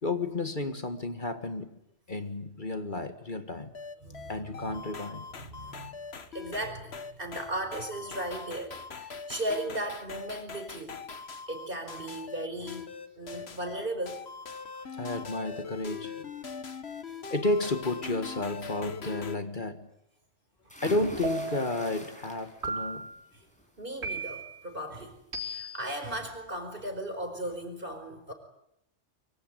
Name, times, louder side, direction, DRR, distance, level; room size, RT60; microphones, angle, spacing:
voice 1, 0.0-1.8 2.1-3.7 4.3-5.2 15.0-16.3 17.3-19.8 20.8-23.1, left 2 dB, 45° left, 8 dB, 1.9 m, -32 dB
sound 1, 3.7-19.4, left 5 dB, 60° left, 1.7 m, -42 dB
voice 2, 4.0-4.7 5.4-5.9 6.3-12.9 13.2-14.3 17.1-17.2 23.3-23.4 23.8-28.3, right 1 dB, 50° right, 7 dB, 5.0 m, -37 dB
sound 2, 20.7-22.8 23.2-23.6 25.0-25.1 25.5-25.6, equal, 5° left, 6.4 m, -43 dB
sound 3, 21.2-21.8 22.6-23.2 24.0-24.6 25.3-25.9, right 3 dB, 65° right, 4.0 m, -35 dB
25.0 x 24.0 x 9.2 m, 0.78 s
omnidirectional pair, 1.2 m